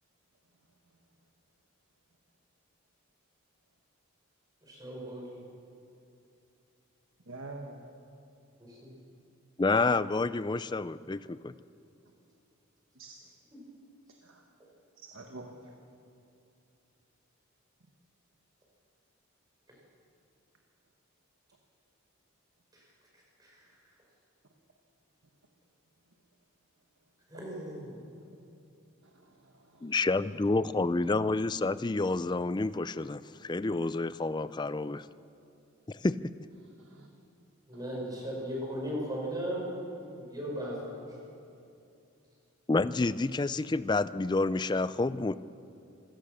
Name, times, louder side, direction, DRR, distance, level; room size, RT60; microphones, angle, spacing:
voice 1, 4.7-5.4 8.6-8.9 22.7-22.8 23.4-23.6 27.3-28.0 37.7-39.7 39.9-41.1, equal, 15° right, -2 dB, 5.4 m, -37 dB
voice 2, 7.2-7.9 12.9-13.2 14.1-14.4 14.9-15.7 27.3-27.4 29.0-30.0 30.7-31.2 36.6-37.1 37.7-38.3, right 2 dB, 65° right, 2 dB, 1.6 m, -48 dB
voice 3, 9.6-11.5 29.8-35.0 36.0-36.2 42.7-45.4, left 3 dB, 20° left, 15 dB, 0.4 m, -29 dB
26.5 x 17.0 x 6.6 m, 2.7 s
head